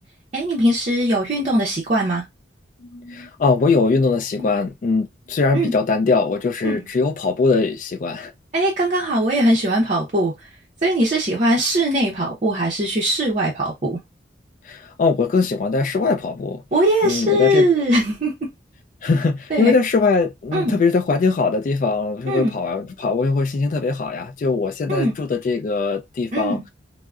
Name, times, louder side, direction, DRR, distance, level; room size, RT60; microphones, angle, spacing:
voice 1, 0.3-2.2 4.4-4.5 5.5-5.7 6.6-6.8 8.5-10.5 10.8-14.0 16.7-18.5 19.5-19.7 20.5-20.8 22.3-22.5 24.9-25.1 26.3-26.6, equal, 40° right, 0.6 m, -20 dB
voice 2, 2.8-8.3 14.7-16.6 17.0-17.7 19.0-26.7, left 4 dB, 45° left, 0.3 m, -21 dB
3.5 x 2.1 x 2.3 m
head